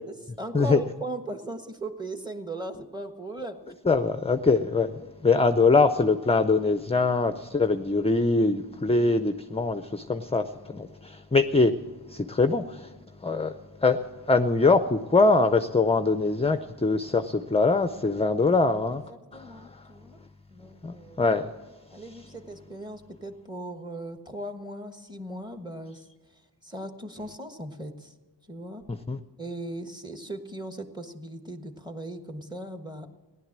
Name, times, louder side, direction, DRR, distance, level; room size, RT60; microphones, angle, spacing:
voice 1, 0.1-3.6 8.8-9.0 19.3-20.2 20.5-21.2 21.9-26.1 26.3-28.1 28.5-28.8 29.4-33.1, right 1 dB, 10° right, 1.3 m, -38 dB
voice 2, 3.9-11.8 12.1-19.0 19.3-19.9 20.8-21.5 28.9-29.2, left 3 dB, 15° left, 0.5 m, -23 dB
16.0 x 11.0 x 7.4 m
wide cardioid pair, 70°, 43 cm